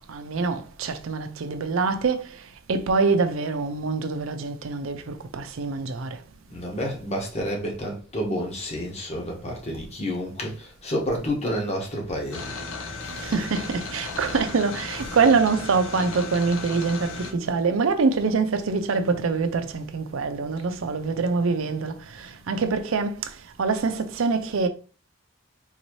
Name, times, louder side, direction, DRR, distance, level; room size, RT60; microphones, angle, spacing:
voice 1, 0.0-2.3 2.7-6.2 13.2-23.3 23.6-24.7, right 4 dB, 85° right, 0.5 m, -25 dB
voice 2, 6.5-12.6 13.0-13.4, equal, 35° left, 1.0 m, -30 dB
sound 1, 12.3-17.3, left 3 dB, 85° left, 0.7 m, -35 dB
3.9 x 2.7 x 3.0 m
head